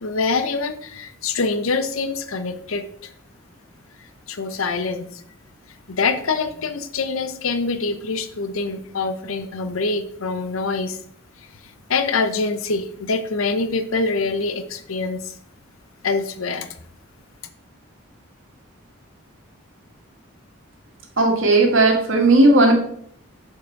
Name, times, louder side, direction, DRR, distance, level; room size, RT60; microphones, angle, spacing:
voice 1, 0.0-3.1 4.3-5.2 5.9-11.0 11.9-15.3 16.0-16.7, left 4 dB, 85° left, 10 dB, 0.8 m, -25 dB
voice 2, 21.2-22.7, right 2 dB, 70° right, 2 dB, 1.8 m, -15 dB
7.0 x 5.0 x 4.6 m, 0.66 s
head